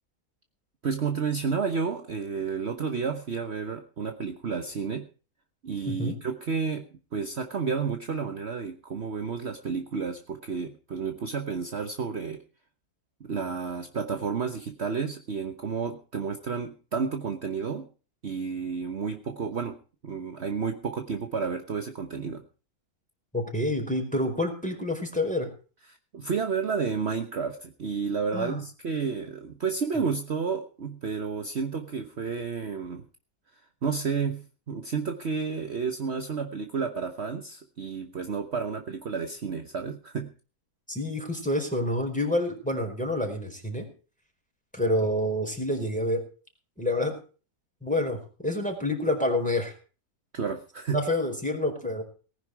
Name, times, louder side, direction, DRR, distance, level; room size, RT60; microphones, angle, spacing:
voice 1, 0.8-5.1 5.6-12.4 13.2-17.9 18.2-19.8 20.0-22.4 25.9-33.0 33.8-40.3 50.3-51.1, right 5 dB, 45° right, 6 dB, 1.4 m, -31 dB
voice 2, 5.9-6.2 23.3-25.5 28.3-28.6 40.9-43.9 44.7-46.2 46.8-47.1 47.8-49.7 50.9-52.0, left 1 dB, 5° left, 3 dB, 4.8 m, -28 dB
19.0 x 10.5 x 4.7 m, 0.37 s
omnidirectional pair, 1.6 m